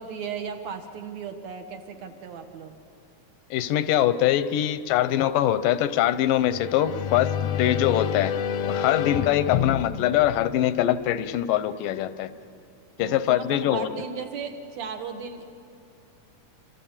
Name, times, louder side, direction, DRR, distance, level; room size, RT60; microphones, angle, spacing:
voice 1, 0.0-2.8 13.0-15.4, right 6 dB, 65° right, 5 dB, 2.3 m, -36 dB
voice 2, 3.5-8.3 8.6-12.3 13.0-13.9, left 12 dB, 90° left, 13 dB, 2.4 m, -23 dB
sound 1, 6.4-11.2, left 9 dB, 75° left, 1.5 m, -29 dB
27.5 x 24.5 x 7.3 m, 2.5 s
omnidirectional pair, 3.8 m